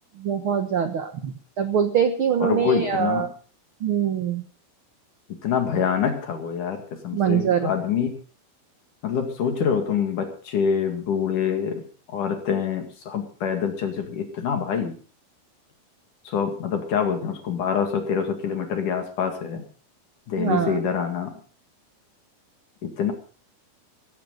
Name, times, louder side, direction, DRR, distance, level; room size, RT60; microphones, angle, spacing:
voice 1, 0.2-3.3 3.8-4.4 7.1-7.7 20.4-20.8, right 8 dB, 70° right, 8 dB, 1.2 m, -23 dB
voice 2, 2.4-3.3 5.4-8.1 9.0-11.8 12.1-15.0 16.3-19.7 20.3-21.3 22.8-23.1, left 7 dB, 60° left, 5 dB, 3.4 m, -25 dB
16.5 x 16.0 x 3.9 m, 0.39 s
omnidirectional pair, 4.3 m